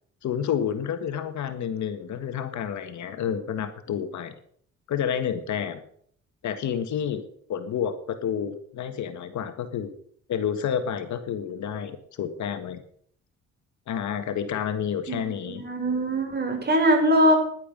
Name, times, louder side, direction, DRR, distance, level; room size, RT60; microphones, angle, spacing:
voice 1, 0.2-4.3 4.9-5.8 6.4-7.2 7.5-9.9 10.3-12.8 13.9-15.6, left 8 dB, 70° left, 9 dB, 1.7 m, -29 dB
voice 2, 15.1-17.3, equal, 35° right, 2 dB, 5.2 m, -22 dB
11.0 x 9.4 x 7.6 m, 0.62 s
cardioid pair, 90°, 30 cm